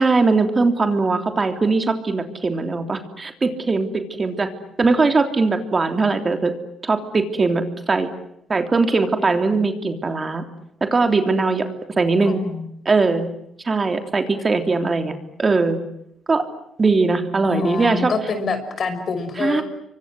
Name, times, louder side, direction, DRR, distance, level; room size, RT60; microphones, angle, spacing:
voice 1, 0.0-4.5 4.8-6.5 6.8-8.1 8.5-10.4 10.8-11.7 12.0-12.4 12.8-13.3 13.6-15.8 16.3-16.4 16.8-18.1 19.4-19.6, right 3 dB, 30° right, 6 dB, 3.3 m, -20 dB
voice 2, 12.2-12.6 17.4-19.6, left 4 dB, 50° left, 10 dB, 6.0 m, -26 dB
29.0 x 24.5 x 7.9 m, 0.76 s
cardioid pair, 90°, 0 cm